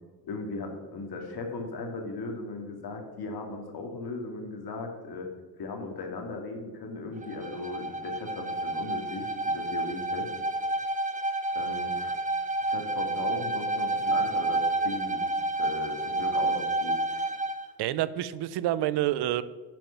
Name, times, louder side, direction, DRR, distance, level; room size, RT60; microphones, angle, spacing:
voice 1, 0.2-5.3 5.6-10.3 11.5-12.2 12.6-15.2 15.5-17.3, left 3 dB, 70° left, 3 dB, 2.5 m, -37 dB
Bowed string instrument, 7.2-17.7, right 2 dB, 20° right, 1.2 m, -29 dB
voice 2, 17.8-19.4, right 13 dB, 90° right, 16 dB, 0.6 m, -28 dB
10.5 x 7.5 x 5.9 m, 1.3 s
cardioid pair, 80°, 39 cm